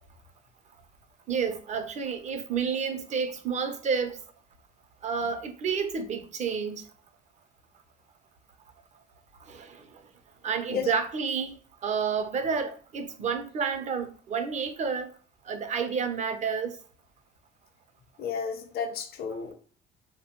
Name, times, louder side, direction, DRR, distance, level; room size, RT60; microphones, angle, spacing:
voice 1, 1.3-4.2 5.0-6.8 9.5-9.8 10.4-15.1 15.5-16.8, right 6 dB, 45° right, 0.6 m, -30 dB
voice 2, 18.2-19.5, left 6 dB, 65° left, 0.7 m, -32 dB
3.4 x 2.2 x 2.9 m
cardioid pair, 110°, 17 cm